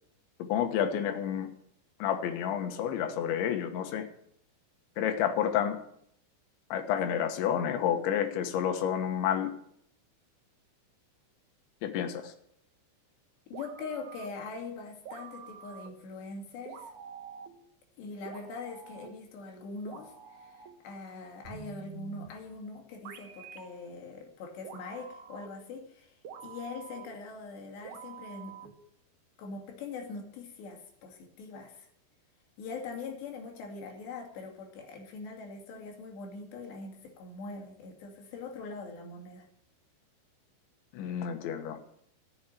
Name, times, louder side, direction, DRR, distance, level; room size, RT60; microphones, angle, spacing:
voice 1, 0.5-1.5 2.0-4.1 5.0-5.8 6.7-9.5 11.8-12.3 40.9-41.8, left 9 dB, 85° left, 7 dB, 3.6 m, -30 dB
voice 2, 13.5-16.9 18.0-28.7 29.4-31.9 32.6-39.5, left 4 dB, 70° left, 2 dB, 4.5 m, -42 dB
sound 1, 13.5-14.5 15.1-16.1 16.7-17.7 18.3-19.3 19.9-20.9 21.4-22.5 23.0-23.8 24.6-25.7 26.2-27.3 27.8-28.9, right 7 dB, 75° right, 1.8 m, -47 dB
13.5 x 7.3 x 9.8 m, 0.70 s
omnidirectional pair, 5.2 m